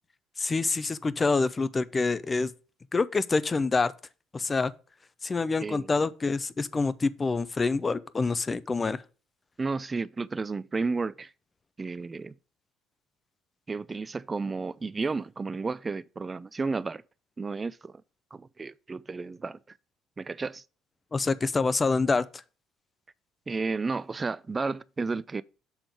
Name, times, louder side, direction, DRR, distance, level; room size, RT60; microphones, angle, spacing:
voice 1, 0.4-2.5 2.9-3.9 4.3-4.7 5.2-9.0 21.1-22.4, left 4 dB, 25° left, 0.5 m, -26 dB
voice 2, 5.6-5.9 9.6-11.3 11.8-12.3 13.7-17.0 17.4-18.0 18.3-19.6 20.2-20.6 23.5-25.4, right 4 dB, 25° right, 0.4 m, -32 dB
7.0 x 3.7 x 6.0 m
supercardioid pair, 85°, 0 cm